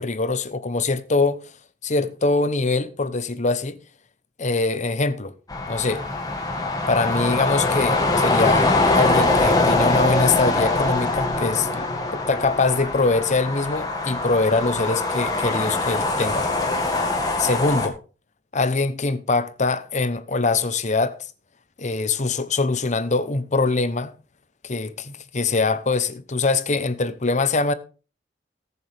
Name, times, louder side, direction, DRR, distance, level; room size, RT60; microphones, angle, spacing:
voice 1, 0.0-1.5 1.8-3.8 4.4-5.3 5.7-6.0 6.9-16.5 17.4-18.0 18.5-21.2 21.8-24.1 24.6-27.7, left 3 dB, 45° left, 0.9 m, -23 dB
sound 1, 5.5-17.9, left 2 dB, 20° left, 2.0 m, -23 dB
18.5 x 6.9 x 3.5 m
head